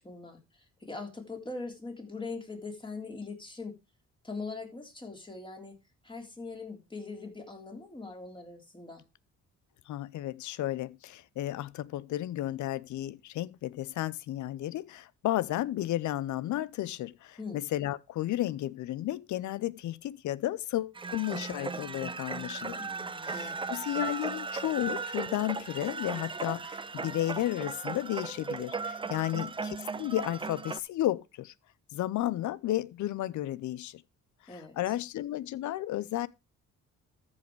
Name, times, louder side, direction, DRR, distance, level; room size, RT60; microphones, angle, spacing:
voice 1, 0.0-3.8 4.2-5.8 6.0-9.0 17.4-17.6 22.7-23.7 29.0-29.5 34.5-34.9, left 3 dB, 15° left, 3.5 m, -42 dB
voice 2, 9.9-22.8 23.2-31.5 31.9-34.0 34.5-36.3, left 14 dB, 75° left, 0.7 m, -33 dB
sound 1, 21.0-30.8, right 4 dB, 15° right, 0.5 m, -37 dB
14.0 x 5.5 x 4.7 m
cardioid pair, 90°, 30 cm